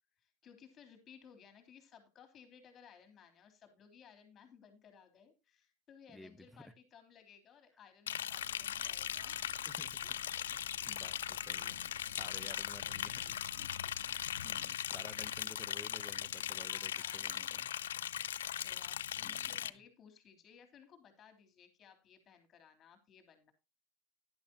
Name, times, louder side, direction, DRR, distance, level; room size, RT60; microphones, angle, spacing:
voice 1, 0.2-9.5 10.0-10.7 12.5-12.8 13.1-14.5 16.7-17.3 18.5-23.5, left 7 dB, 35° left, 5 dB, 3.2 m, -60 dB
voice 2, 6.1-6.7 9.6-10.1 10.3-13.4 14.4-17.7 19.2-19.5, left 1 dB, 5° left, 14 dB, 0.8 m, -54 dB
Liquid, 8.1-19.7, left 10 dB, 90° left, 0.4 m, -39 dB
sound 1, 8.3-14.7, right 4 dB, 90° right, 2.4 m, -59 dB
11.5 x 10.5 x 2.9 m, 0.27 s
hypercardioid pair, 110°, 0 cm